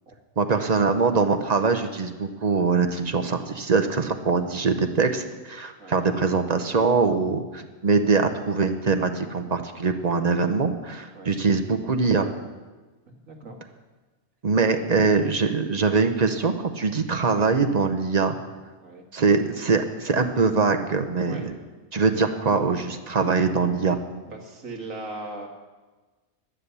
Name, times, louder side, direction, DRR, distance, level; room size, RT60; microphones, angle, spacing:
voice 1, 0.4-12.3 14.4-18.4 19.1-21.5 21.9-24.0, right 4 dB, 40° right, 6 dB, 0.6 m, -23 dB
voice 2, 13.1-13.7 18.8-19.1 21.3-21.5 22.2-22.3 24.3-25.5, right 2 dB, 65° right, 1 dB, 2.1 m, -39 dB
11.0 x 9.9 x 6.8 m, 1.3 s
omnidirectional pair, 1.5 m